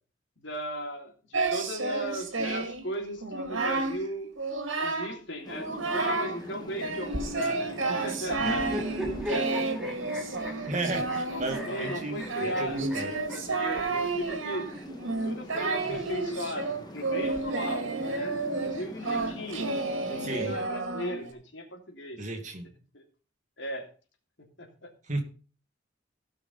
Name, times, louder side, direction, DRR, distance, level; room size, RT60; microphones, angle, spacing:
voice 1, 0.4-4.3 4.8-9.5 11.0-14.7 15.2-19.7 20.0-22.2 22.9-23.0 23.6-23.9 24.6-24.9, equal, 70° left, 2 dB, 3.0 m, -37 dB
Singing, 1.3-2.8 3.2-4.0 4.4-5.2 5.5-6.4 6.8-21.3, right 3 dB, 90° right, 2.1 m, -31 dB
sound 1, 5.4-20.7, left 1 dB, 20° left, 1.5 m, -45 dB
sound 2, 8.4-14.6 15.5-16.7, left 1 dB, 5° right, 2.6 m, -38 dB
voice 2, 8.4-8.7 10.7-13.1 20.2-20.6 22.2-22.7 25.1-25.2, right 2 dB, 40° right, 4 dB, 2.2 m, -34 dB
16.5 x 5.9 x 5.3 m, 0.38 s
head